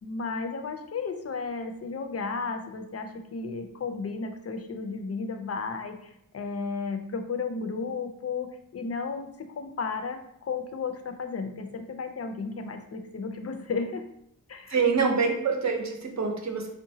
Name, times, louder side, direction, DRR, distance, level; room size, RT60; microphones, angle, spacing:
voice 1, 0.0-14.0 14.5-15.2, left 4 dB, 45° left, 6 dB, 0.4 m, -34 dB
voice 2, 14.7-16.7, right 5 dB, 55° right, 2 dB, 0.6 m, -26 dB
3.8 x 2.1 x 2.7 m, 0.77 s
wide cardioid pair, 75°, 33 cm